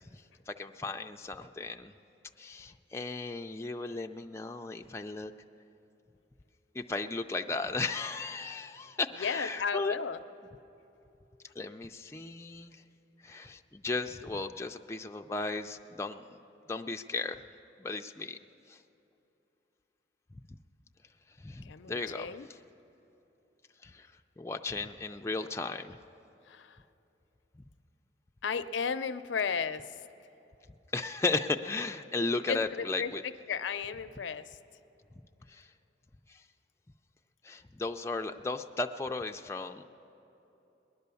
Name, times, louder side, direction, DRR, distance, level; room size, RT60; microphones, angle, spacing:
voice 1, 0.0-1.9 2.4-5.3 6.7-9.9 11.6-12.8 13.2-16.2 16.7-17.4 17.8-18.4 18.7-18.8 21.4-22.3 23.8-24.1 24.4-26.0 30.9-33.2 35.5-35.7 36.3-36.4 37.4-39.8, left 3 dB, 15° left, 4 dB, 0.3 m, -35 dB
voice 2, 9.2-10.2 21.6-22.5 26.5-26.8 28.4-30.0 32.5-34.6, left 6 dB, 90° left, 12 dB, 0.5 m, -34 dB
19.5 x 10.5 x 6.9 m, 3.0 s
head